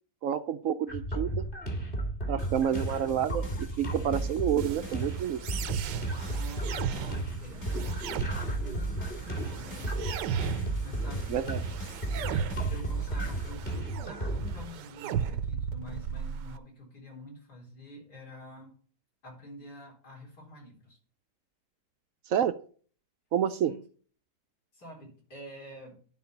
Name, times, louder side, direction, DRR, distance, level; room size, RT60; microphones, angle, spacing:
voice 1, 0.2-1.3 2.3-3.4 3.8-5.4 11.3-11.6 22.3-22.6 23.3-23.7, right 9 dB, 70° right, 11 dB, 0.8 m, -28 dB
sound 1, 0.9-14.7, right 1 dB, 30° left, 2.1 m, -34 dB
voice 2, 2.4-3.0 6.3-9.9 10.8-11.3 12.7-18.7 19.2-21.0 23.5-23.8 24.7-26.0, left 1 dB, 65° left, -3 dB, 4.6 m, -47 dB
sound 2, 2.4-13.5, equal, 45° left, 2.3 m, -47 dB
sound 3, 4.6-16.6, right 8 dB, 90° right, 1.4 m, -36 dB
11.0 x 3.9 x 7.0 m, 0.43 s
omnidirectional pair, 1.9 m